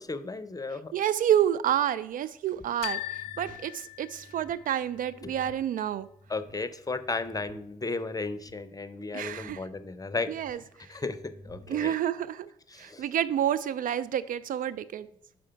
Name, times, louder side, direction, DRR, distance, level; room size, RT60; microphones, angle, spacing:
voice 1, 0.0-0.9 5.2-5.3 6.3-10.3 10.9-11.9 12.7-13.0, left 3 dB, 20° left, 12 dB, 0.7 m, -34 dB
voice 2, 0.9-6.1 9.1-9.6 10.3-10.6 11.7-12.5 12.8-15.1, right 10 dB, 50° right, 14 dB, 0.4 m, -29 dB
sound 1, 2.8-4.7, left 14 dB, 80° left, 0.4 m, -39 dB
sound 2, 2.8-11.9, equal, 25° right, 3.1 m, -54 dB
5.0 x 4.9 x 5.7 m, 0.70 s
hypercardioid pair, 40°, 18 cm